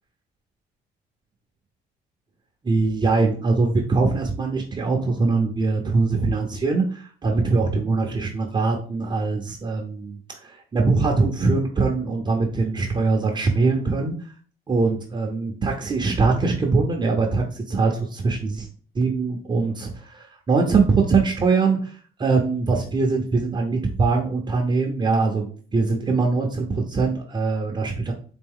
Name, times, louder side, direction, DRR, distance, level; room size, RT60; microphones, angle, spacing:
voice 1, 2.6-14.2 14.7-18.7 18.9-28.1, right 4 dB, 25° right, 1 dB, 0.7 m, -22 dB
4.3 x 2.7 x 3.6 m, 0.44 s
cardioid pair, 110°, 17 cm